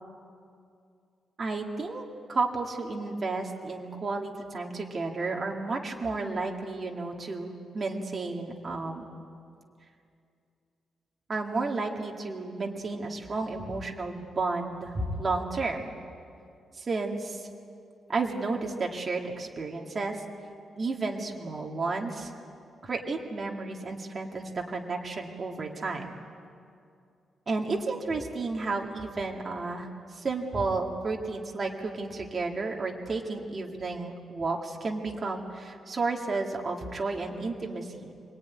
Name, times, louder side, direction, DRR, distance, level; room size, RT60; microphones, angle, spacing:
voice 1, 1.4-9.1 11.3-15.9 16.7-17.5 18.1-20.2 20.8-22.3 22.8-26.1 27.5-29.9 30.2-38.1, right 3 dB, 30° right, 0 dB, 2.1 m, -32 dB
28.0 x 20.0 x 9.6 m, 2.4 s
wide cardioid pair, 180°, 0 cm